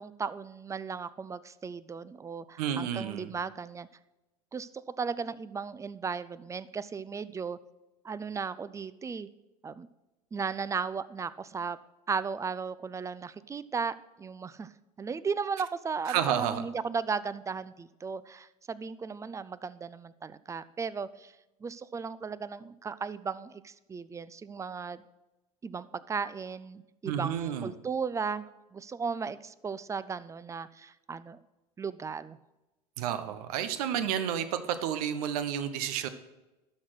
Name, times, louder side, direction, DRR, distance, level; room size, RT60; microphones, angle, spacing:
voice 1, 0.0-3.9 4.5-7.6 8.0-9.3 9.6-9.9 10.3-11.8 12.1-14.7 15.0-21.3 21.6-25.0 25.6-28.5 28.7-31.4 31.8-32.4, right 5 dB, 15° right, 16 dB, 0.4 m, -36 dB
voice 2, 2.6-3.3 16.1-16.6 27.0-27.7 33.0-36.1, right 9 dB, 70° right, 11 dB, 0.9 m, -31 dB
12.5 x 4.2 x 6.2 m, 1.0 s
hypercardioid pair, 85°, 20 cm